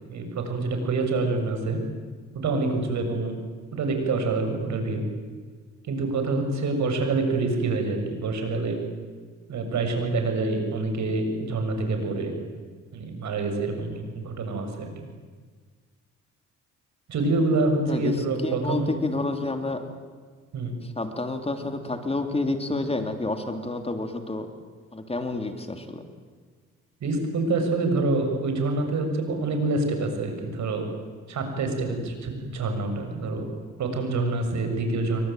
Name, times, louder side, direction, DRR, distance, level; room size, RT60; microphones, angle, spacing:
voice 1, 0.1-1.8 2.3-3.4 3.7-5.0 5.8-8.8 9.5-12.3 12.9-14.9 17.1-18.9 20.5-20.7 27.0-30.9 31.3-33.5 33.8-35.3, right 3 dB, 65° right, 5 dB, 6.9 m, -26 dB
voice 2, 17.9-19.8 20.8-24.5 24.9-26.0, left 2 dB, 20° left, 6 dB, 3.1 m, -29 dB
27.5 x 23.5 x 9.2 m, 1.5 s
cardioid pair, 90°, 30 cm